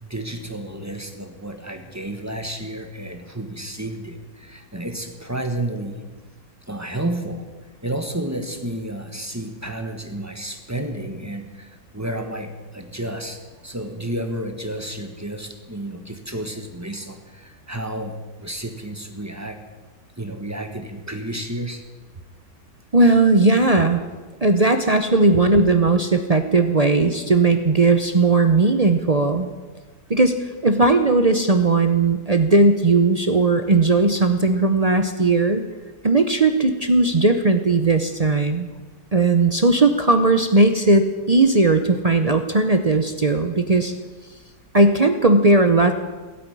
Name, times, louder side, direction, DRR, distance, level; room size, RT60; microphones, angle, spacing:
voice 1, 0.0-6.0 6.7-7.5 7.8-19.6 20.2-21.8 25.3-25.4, right 1 dB, 10° right, 5 dB, 1.1 m, -31 dB
voice 2, 22.9-24.0 24.4-29.5 30.1-30.3 30.6-35.7 36.0-38.7 39.1-43.9 44.7-45.9, right 3 dB, 50° right, 7 dB, 0.4 m, -17 dB
16.0 x 8.6 x 9.9 m, 1.3 s
omnidirectional pair, 1.9 m